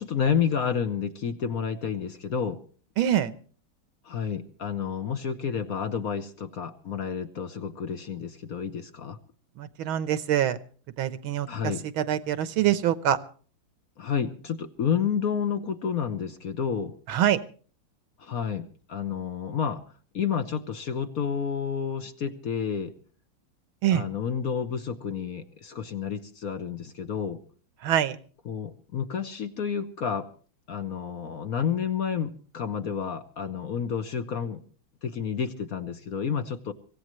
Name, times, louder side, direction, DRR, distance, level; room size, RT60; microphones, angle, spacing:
voice 1, 0.0-2.6 4.0-9.2 11.5-11.8 14.0-16.9 18.2-19.8 20.1-22.9 23.9-27.4 28.5-30.3 30.7-34.6 35.0-36.7, left 7 dB, 50° left, 9 dB, 1.2 m, -30 dB
voice 2, 3.0-3.3 9.6-10.6 11.0-13.2 17.1-17.4 23.8-24.0 27.8-28.2, right 11 dB, 80° right, 14 dB, 1.8 m, -25 dB
24.5 x 16.5 x 3.1 m, 0.41 s
omnidirectional pair, 2.2 m